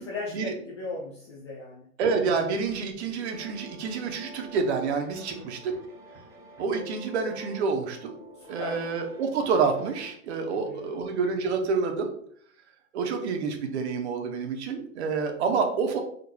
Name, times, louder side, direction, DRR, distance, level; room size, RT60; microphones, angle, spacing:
voice 1, 0.0-1.9 5.1-5.5 8.3-8.9 10.5-11.0, left 3 dB, 20° left, -4 dB, 0.4 m, -38 dB
voice 2, 2.0-5.7 6.6-8.2 8.5-12.1 12.9-16.0, right 5 dB, 50° right, 4 dB, 0.9 m, -28 dB
sound 1, 3.3-10.1, left 1 dB, 5° right, 1.5 m, -47 dB
4.6 x 3.7 x 2.2 m, 0.63 s
hypercardioid pair, 130°, 44 cm